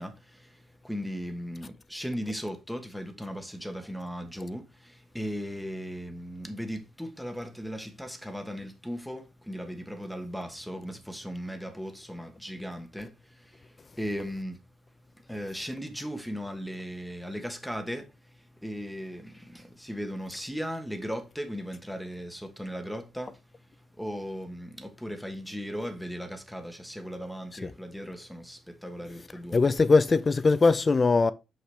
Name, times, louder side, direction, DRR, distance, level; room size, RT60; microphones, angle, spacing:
voice 1, 0.0-14.6 15.2-23.4 23.9-29.6, equal, ahead, 1.1 m, -37 dB
voice 2, 29.5-31.3, left 4 dB, 30° left, 0.5 m, -21 dB
5.8 x 5.7 x 3.3 m
cardioid pair, 90°, 0 cm